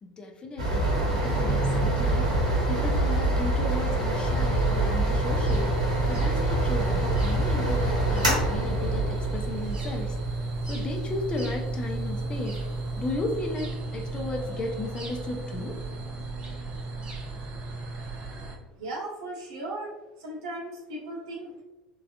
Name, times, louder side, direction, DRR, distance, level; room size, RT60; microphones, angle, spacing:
voice 1, 0.0-0.9 1.2-12.7 13.0-15.8, left 2 dB, 25° left, 2 dB, 0.5 m, -35 dB
sound 1, 0.6-13.0, right 1 dB, 80° right, 1.2 m, -27 dB
sound 2, 0.8-18.5, right 2 dB, 25° right, 0.6 m, -32 dB
voice 2, 18.7-19.9 20.2-21.6, right 1 dB, 60° right, -3 dB, 1.0 m, -36 dB
3.4 x 2.3 x 2.5 m, 1.0 s
figure-of-eight pair, 75°, 4 cm